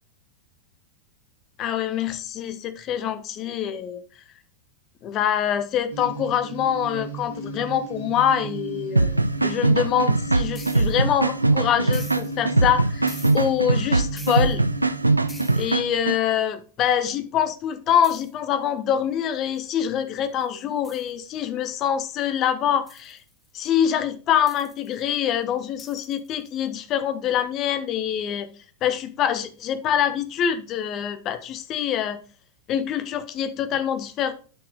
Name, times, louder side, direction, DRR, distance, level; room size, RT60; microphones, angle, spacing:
voice 1, 1.6-4.0 5.0-9.1 9.4-14.6 15.5-23.2 23.5-28.5 28.8-32.2 32.7-34.3, left 9 dB, 35° left, 1.0 m, -25 dB
sound 1, 5.9-15.5, right 3 dB, 80° left, 2.1 m, -35 dB
sound 2, 9.0-16.2, right 2 dB, 85° right, 0.4 m, -22 dB
sound 3, 10.6-11.0 11.9-12.4 13.1-13.6 14.2-14.6 15.3-15.8 18.0-18.3 19.6-19.7 20.4-20.5 20.8-21.1 22.9-23.7 24.5-25.3 25.8-26.6, left 2 dB, 10° left, 1.2 m, -45 dB
9.2 x 5.9 x 4.0 m
figure-of-eight pair, 90°, 0 cm